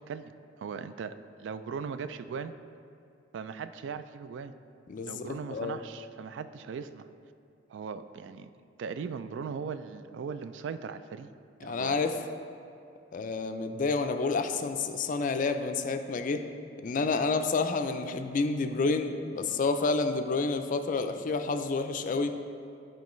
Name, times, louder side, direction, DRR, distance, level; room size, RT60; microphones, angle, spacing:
voice 1, 0.6-1.2 1.4-2.5 3.3-4.5 5.1-7.1 7.7-8.5 8.8-11.3 11.6-12.0, right 6 dB, 75° right, 11 dB, 0.3 m, -38 dB
voice 2, 4.9-5.8 11.6-12.1 13.1-16.4 16.8-22.3, left 4 dB, 45° left, 7 dB, 0.4 m, -29 dB
10.5 x 4.5 x 3.1 m, 2.6 s
head